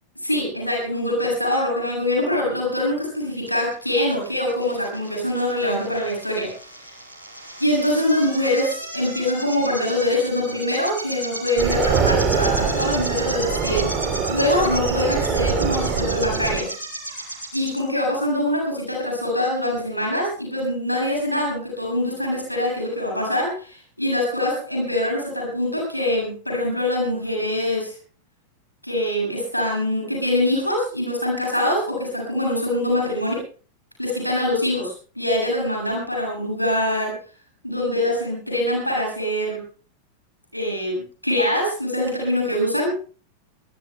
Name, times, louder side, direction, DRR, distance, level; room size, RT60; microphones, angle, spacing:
voice 1, 0.2-6.5 6.8-6.9 7.6-16.7 17.5-27.9 28.8-33.4 34.0-37.2 37.6-39.6 40.5-42.9, left 1 dB, 90° left, -1 dB, 7.6 m, -24 dB
sound 1, 3.5-17.8, right 1 dB, 85° right, 6.9 m, -34 dB
sound 2, 11.6-16.6, right 6 dB, 25° right, 3.7 m, -23 dB
23.0 x 21.0 x 2.3 m, 0.39 s
figure-of-eight pair, 90°, 0 cm